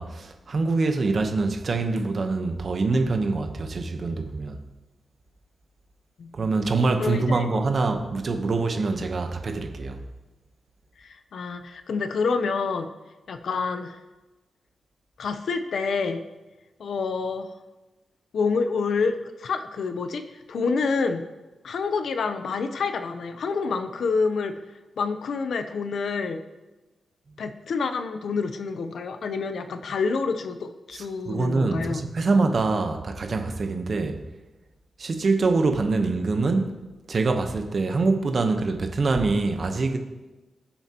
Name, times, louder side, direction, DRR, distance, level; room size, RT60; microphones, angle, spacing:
voice 1, 0.0-4.7 6.3-10.0 30.9-34.2 35.0-36.7 37.1-40.0, right 3 dB, 40° right, 1.0 m, -24 dB
voice 2, 7.0-7.4 11.0-12.9 13.3-14.0 15.2-16.2 16.8-17.5 18.3-21.3 21.6-24.5 25.0-26.4 27.4-32.0, left 4 dB, 65° left, 0.7 m, -27 dB
18.5 x 7.3 x 3.0 m
wide cardioid pair, 160°, 0 cm